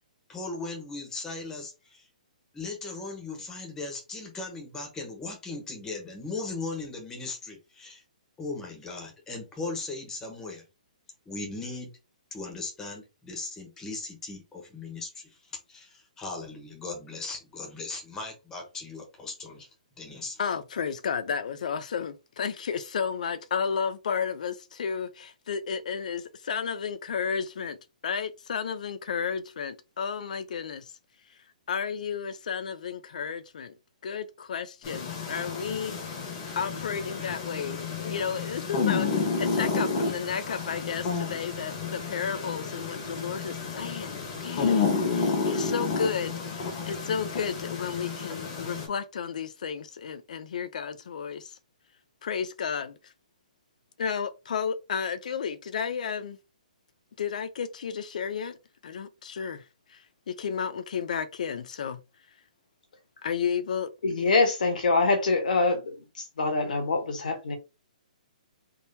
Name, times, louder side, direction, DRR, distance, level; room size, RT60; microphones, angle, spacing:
voice 1, 0.3-2.1 2.5-8.0 8.4-10.6 11.2-11.9 12.3-19.7 20.0-20.4, left 3 dB, 10° left, 1.2 m, -38 dB
voice 2, 20.4-27.8 28.0-30.9 31.7-33.7 34.0-36.0 36.6-51.6 52.2-53.1 54.0-56.4 57.2-58.6 58.8-59.6 59.9-62.0 63.2-63.9, left 6 dB, 65° left, 0.6 m, -32 dB
sound 1, 34.8-48.9, left 4 dB, 35° left, 1.2 m, -31 dB
voice 3, 64.0-66.0 66.4-67.6, left 3 dB, 80° left, 1.4 m, -24 dB
3.7 x 2.8 x 2.7 m
hypercardioid pair, 155°, 4 cm